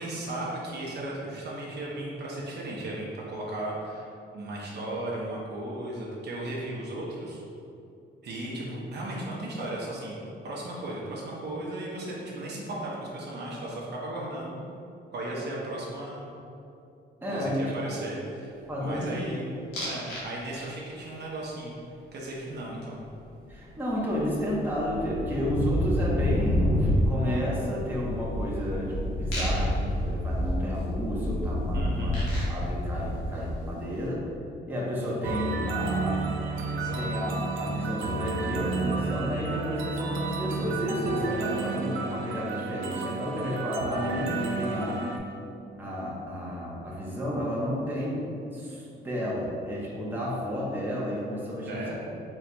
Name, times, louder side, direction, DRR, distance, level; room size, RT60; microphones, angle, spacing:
voice 1, 0.0-4.0 4.3-7.4 8.2-14.5 15.1-16.3 17.3-18.5 18.8-19.4 19.8-21.8 22.1-23.0 31.7-32.2 36.6-37.1 51.7-51.9, right 1 dB, 55° right, -4 dB, 0.9 m, -36 dB
voice 2, 17.2-17.9 18.7-19.3 23.5-29.7 30.0-32.2 32.5-34.2 34.7-36.2 37.0-45.0 45.8-48.2 48.5-51.9, equal, 10° right, -6 dB, 1.0 m, -31 dB
sound 1, 19.7-20.3 20.6-21.0 23.5-23.6 23.8-33.9, equal, 85° left, 1.4 m, -29 dB
sound 2, 35.2-45.2, right 3 dB, 90° right, 0.5 m, -31 dB
4.5 x 4.0 x 2.3 m, 2.6 s
cardioid pair, 90°, 20 cm